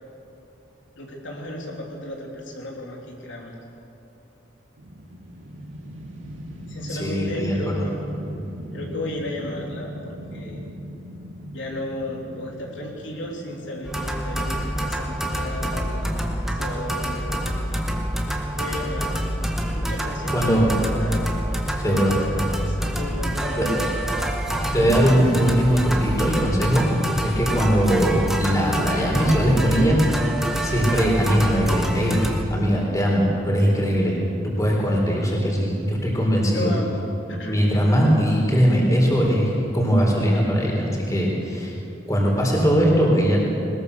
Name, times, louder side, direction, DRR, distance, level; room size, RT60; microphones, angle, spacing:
voice 1, 1.0-3.6 6.7-7.7 8.7-10.6 11.5-17.4 18.6-19.3 19.5-21.2 21.8-22.3 22.6-23.7 24.1-24.3 36.5-37.0 37.3-37.6, left 1 dB, 75° left, -1 dB, 3.2 m, -34 dB
sound 1, 4.8-17.0, equal, 80° right, 2.6 m, -39 dB
voice 2, 6.9-7.8 20.3-20.7 21.8-22.2 23.6-23.7 24.7-30.0 30.6-32.2 32.5-34.2 34.4-36.7 37.5-41.7 42.1-43.4, equal, 15° left, -2 dB, 4.2 m, -20 dB
sound 2, 13.8-32.4, right 1 dB, ahead, 1.6 m, -26 dB
21.5 x 20.5 x 6.8 m, 2.9 s
head